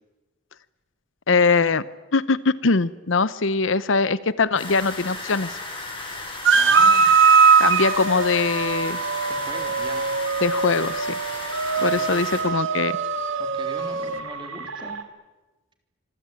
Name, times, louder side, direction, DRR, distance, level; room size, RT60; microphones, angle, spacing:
voice 1, 1.3-1.8 2.1-5.6 7.6-9.0 10.4-11.2 11.8-13.0, left 4 dB, 65° left, 16 dB, 0.8 m, -22 dB
sound 1, 4.6-12.4, left 2 dB, 25° left, 7.8 m, -35 dB
voice 2, 6.5-7.1 9.3-10.1 11.8-12.2 13.4-15.0, right 2 dB, 25° right, 5 dB, 3.7 m, -39 dB
sound 2, 6.5-14.2, right 5 dB, 65° right, 1.8 m, -21 dB
sound 3, 7.0-15.0, right 7 dB, 80° right, 2.7 m, -33 dB
26.0 x 22.0 x 9.0 m, 1.2 s
head